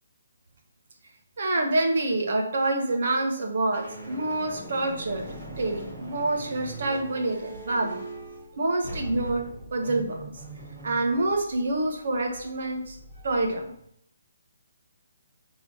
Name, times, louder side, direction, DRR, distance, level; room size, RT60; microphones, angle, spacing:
voice 1, 1.4-5.3 5.6-8.0 8.6-9.5 9.7-10.2 10.8-13.0 13.2-13.7, right 2 dB, 55° right, 3 dB, 1.2 m, -27 dB
sound 1, 3.7-13.8, right 1 dB, 25° right, 2.5 m, -41 dB
6.0 x 3.9 x 5.6 m, 0.70 s
hypercardioid pair, 170°, 0 cm